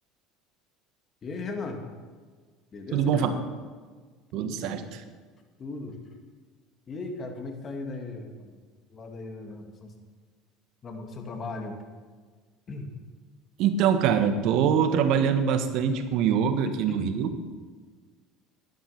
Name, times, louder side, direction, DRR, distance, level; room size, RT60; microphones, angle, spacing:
voice 1, 1.2-1.8 2.7-3.4 4.3-4.9 5.6-6.0 6.9-8.6 8.9-9.9 10.8-11.8 12.7-12.9 16.9-17.1, left 3 dB, 35° left, 3 dB, 2.2 m, -37 dB
voice 2, 2.9-3.4 4.3-5.0 13.6-17.3, right 7 dB, 65° right, 8 dB, 1.3 m, -24 dB
11.5 x 10.5 x 5.9 m, 1.5 s
supercardioid pair, 90°, 0 cm